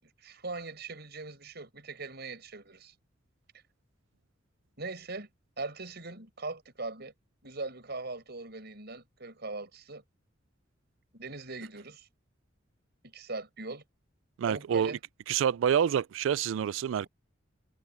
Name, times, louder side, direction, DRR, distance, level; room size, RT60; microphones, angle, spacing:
voice 1, 0.0-2.9 4.8-5.3 5.6-7.1 7.4-10.0 11.1-12.1 13.0-13.8 14.5-15.0, right 3 dB, 55° right, 6.3 m, -40 dB
voice 2, 14.4-15.0 15.3-17.1, right 8 dB, 80° right, 0.3 m, -27 dB
head